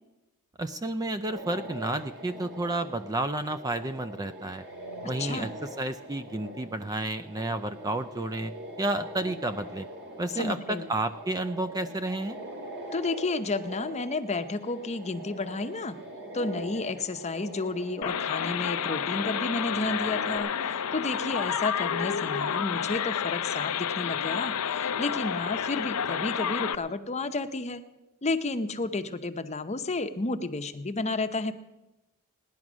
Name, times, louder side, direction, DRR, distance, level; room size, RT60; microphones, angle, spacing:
voice 1, 0.6-4.6 5.0-8.5 8.8-9.9 10.2-12.4, right 2 dB, 15° right, 11 dB, 0.4 m, -31 dB
sound 1, 1.3-20.4, right 1 dB, 50° right, 3.1 m, -43 dB
voice 2, 5.2-5.5 10.3-10.9 12.9-16.0 16.3-27.8 28.2-31.5, left 3 dB, 30° left, 9 dB, 0.7 m, -31 dB
sound 2, 18.0-26.8, left 8 dB, 75° left, 0.6 m, -30 dB
17.0 x 10.5 x 6.2 m, 1.0 s
head